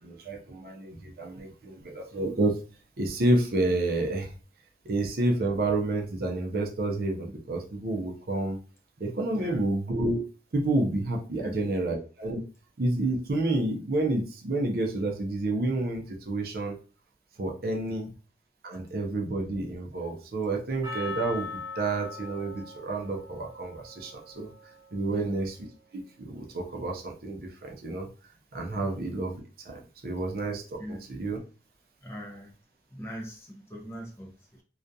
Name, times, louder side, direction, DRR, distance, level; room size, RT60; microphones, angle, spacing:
voice 1, 0.0-2.5 3.0-4.3 4.9-8.6 9.0-10.2 10.5-12.4 12.8-16.8 17.4-18.1 18.6-24.5 24.9-25.6 25.9-28.1 28.5-31.4, right 2 dB, 55° right, 2 dB, 0.5 m, -29 dB
voice 2, 9.3-9.6 11.4-11.6 17.9-18.0 25.1-25.3 28.8-28.9 30.8-31.0 32.0-32.5 32.9-34.6, equal, 15° left, -1 dB, 0.4 m, -41 dB
Percussion, 20.8-25.3, left 4 dB, 20° right, 0.8 m, -41 dB
2.4 x 2.2 x 2.6 m, 0.37 s
head